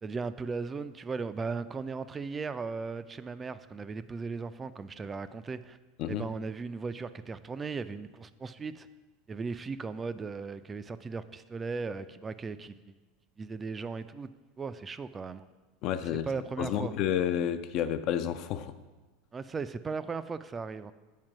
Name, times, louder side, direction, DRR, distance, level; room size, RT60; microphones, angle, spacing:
voice 1, 0.0-5.8 6.1-8.9 9.3-13.0 13.4-14.3 14.6-15.5 16.3-16.9 19.3-20.9, right 4 dB, 20° right, 0.3 m, -37 dB
voice 2, 15.8-16.3 16.6-18.7, left 10 dB, 50° left, 0.4 m, -30 dB
7.4 x 4.4 x 6.0 m
figure-of-eight pair, 80°, 0 cm